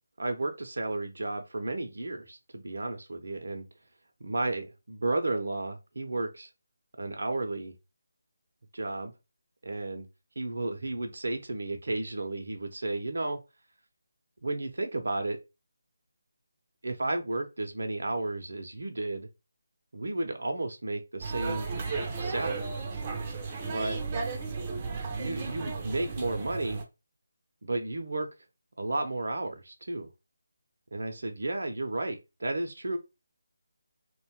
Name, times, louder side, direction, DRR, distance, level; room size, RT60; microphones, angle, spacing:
voice 1, 0.2-3.7 4.2-6.5 7.0-7.7 8.7-9.1 9.6-10.1 10.4-13.4 14.4-15.4 16.8-19.3 19.9-21.7 22.2-22.7 23.7-24.0 25.1-26.8 27.6-28.3 28.8-30.1 30.9-33.0, right 2 dB, 70° right, 0.6 m, -33 dB
sound 1, 21.2-26.8, right 4 dB, 25° right, 0.5 m, -34 dB
2.9 x 2.2 x 2.8 m
figure-of-eight pair, 160°, 0 cm